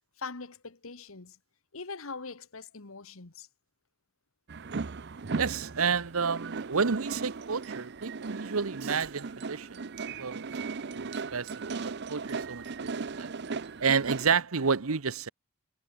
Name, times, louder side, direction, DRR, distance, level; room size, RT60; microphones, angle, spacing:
voice 1, 0.2-1.4 1.7-3.5, left 4 dB, 80° left, 1.5 m, -42 dB
sound 1, 4.5-14.4, right 4 dB, 55° right, 0.6 m, -37 dB
voice 2, 5.4-9.9 10.2-10.5 10.9-13.3 13.8-15.3, right 5 dB, 85° right, 1.0 m, -30 dB
head